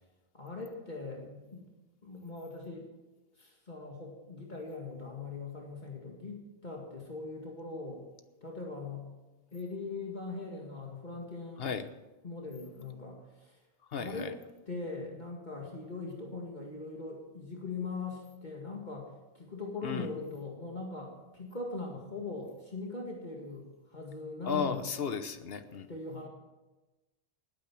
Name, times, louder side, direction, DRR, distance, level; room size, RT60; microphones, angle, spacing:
voice 1, 0.3-1.7 2.0-2.9 3.3-8.0 8.4-9.1 9.5-11.7 12.2-13.6 14.0-14.3 14.7-24.8 25.9-26.3, left 3 dB, 45° left, -1 dB, 2.1 m, -41 dB
voice 2, 13.9-14.3 19.8-20.1 24.4-25.9, left 6 dB, 70° left, 10 dB, 1.2 m, -34 dB
19.0 x 9.2 x 6.1 m, 1.1 s
omnidirectional pair, 1.0 m